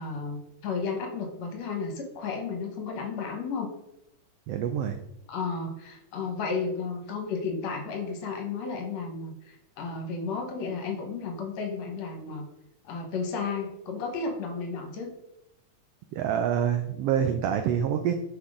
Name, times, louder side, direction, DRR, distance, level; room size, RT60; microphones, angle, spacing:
voice 1, 0.0-3.7 5.3-12.5 12.9-15.1, left 4 dB, 65° left, 4 dB, 2.1 m, -33 dB
voice 2, 4.5-5.0 16.1-18.1, right 9 dB, 85° right, 7 dB, 1.3 m, -26 dB
6.3 x 5.8 x 4.9 m, 0.82 s
omnidirectional pair, 3.4 m